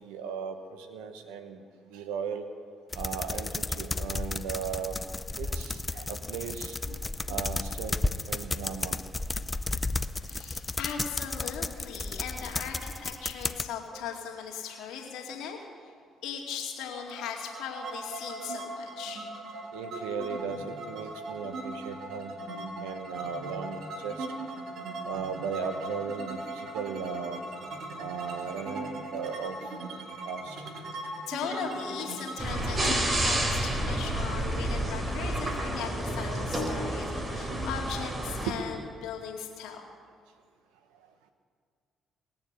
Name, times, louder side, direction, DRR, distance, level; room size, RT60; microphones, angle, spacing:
voice 1, 0.0-2.5 2.9-5.0 5.4-7.0 7.3-8.0 8.3-9.0 10.3-10.4 13.9-14.0 19.7-24.3 25.0-27.4 28.0-29.6 30.2-30.6 37.3-37.6 38.5-38.6, right 6 dB, 90° right, 8 dB, 1.0 m, -37 dB
sound 1, 2.9-13.7, left 2 dB, 25° left, 0.5 m, -33 dB
voice 2, 10.2-15.9 16.2-19.2 31.3-39.8, left 7 dB, 75° left, 0 dB, 2.2 m, -38 dB
sound 2, 17.0-34.7, right 1 dB, 70° right, 2.2 m, -39 dB
sound 3, 32.4-38.5, right 1 dB, 30° right, 3.6 m, -30 dB
19.5 x 7.1 x 8.2 m, 2.1 s
supercardioid pair, 60°, 0 cm